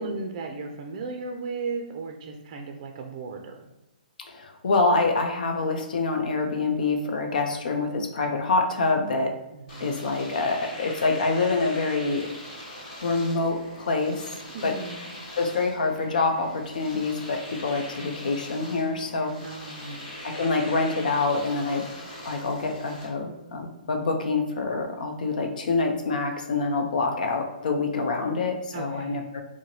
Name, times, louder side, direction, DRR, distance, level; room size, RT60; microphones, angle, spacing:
voice 1, 0.0-3.7 9.5-10.0 14.5-15.1 19.4-20.1 28.7-29.3, right 4 dB, 40° right, 3 dB, 0.4 m, -36 dB
voice 2, 4.3-9.4 9.8-12.3 13.0-14.2 14.6-14.7 15.4-19.3 20.4-21.9 22.2-29.4, left 3 dB, 65° left, 4 dB, 0.7 m, -26 dB
Domestic sounds home sounds, 9.7-23.1, left 1 dB, 40° left, 1.5 m, -41 dB
4.6 x 2.1 x 3.0 m, 0.96 s
hypercardioid pair, 135°, 5 cm